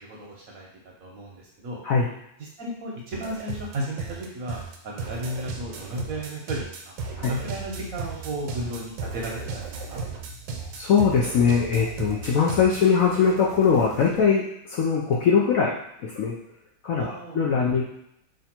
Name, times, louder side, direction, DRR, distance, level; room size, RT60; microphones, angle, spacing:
voice 1, 0.1-1.8 2.6-6.9 7.2-10.0 17.0-17.4, right 1 dB, 60° right, -2 dB, 1.0 m, -34 dB
sound 1, 3.1-14.2, right 4 dB, 80° right, 1.3 m, -36 dB
voice 2, 10.7-15.7 16.0-16.3 16.8-17.8, left 6 dB, 70° left, -4 dB, 0.8 m, -21 dB
3.3 x 2.6 x 4.2 m, 0.76 s
omnidirectional pair, 1.9 m